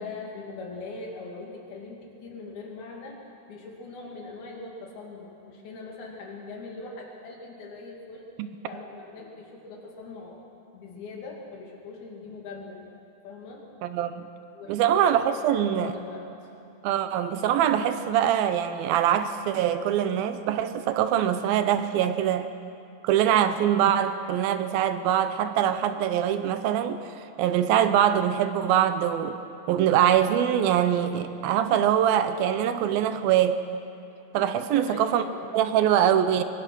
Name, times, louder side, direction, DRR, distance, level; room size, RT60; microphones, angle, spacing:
voice 1, 0.0-3.2 3.5-8.3 8.6-10.4 10.7-12.8 13.2-14.0 14.5-16.5 27.5-27.7 34.7-35.5, left 3 dB, 80° left, 4.5 m, -41 dB
voice 2, 13.8-14.2 14.7-15.9 16.8-22.5 23.0-29.4 29.7-33.6 34.3-35.3 35.5-36.4, right 10 dB, 80° right, 2.6 m, -23 dB
24.0 x 22.5 x 6.2 m
omnidirectional pair, 4.3 m